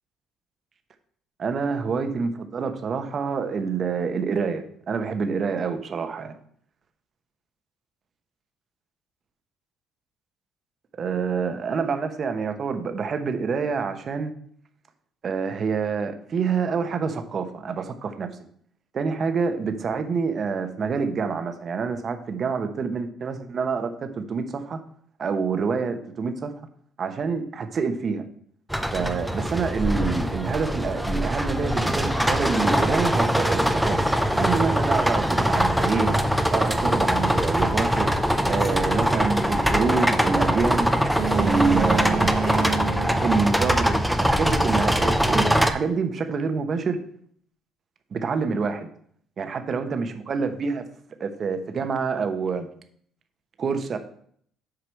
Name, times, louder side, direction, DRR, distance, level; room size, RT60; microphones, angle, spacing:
voice 1, 1.4-6.3 11.0-14.3 15.2-18.3 18.9-24.8 25.2-26.5 27.0-28.2 28.9-34.0 34.3-36.2 36.5-38.1 38.5-40.9 41.3-42.3 43.2-47.0 48.1-48.9 49.4-50.8 51.2-52.7 53.6-54.0, right 5 dB, 35° right, 8 dB, 1.0 m, -27 dB
sound 1, 28.7-45.7, equal, ahead, 0.5 m, -22 dB
Boat Water vehicle, 41.2-44.3, right 6 dB, 60° right, 0.8 m, -29 dB
7.7 x 5.0 x 6.3 m, 0.62 s
cardioid pair, 155°, 0 cm